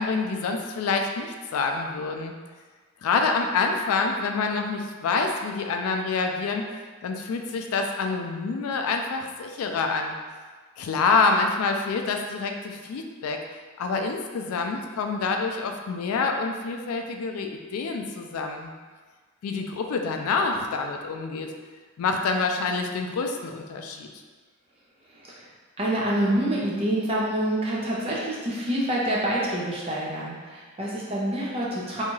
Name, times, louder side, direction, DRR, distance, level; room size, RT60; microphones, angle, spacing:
voice 1, 0.0-2.4 3.0-6.6 7.0-10.2 10.8-13.4 13.8-18.7 19.4-21.5 22.0-24.1, left 4 dB, 85° left, 4 dB, 0.3 m, -27 dB
voice 2, 25.8-32.0, right 1 dB, 25° right, -5 dB, 0.5 m, -27 dB
2.7 x 2.3 x 3.0 m, 1.5 s
head